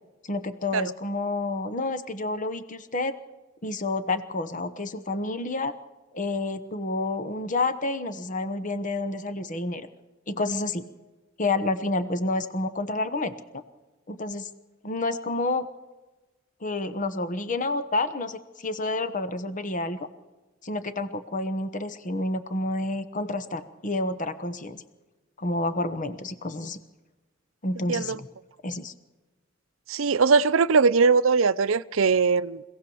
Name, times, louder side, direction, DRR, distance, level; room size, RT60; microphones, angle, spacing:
voice 1, 0.2-3.1 3.6-5.7 6.1-9.9 10.3-10.9 11.4-13.6 14.1-14.5 14.8-15.7 16.6-20.1 20.6-24.8 25.4-26.8 27.6-28.3 28.6-28.9, left 2 dB, 40° left, 1.0 m, -29 dB
voice 2, 27.9-28.2 29.9-32.6, right 5 dB, 70° right, 0.6 m, -21 dB
25.5 x 17.0 x 7.1 m
head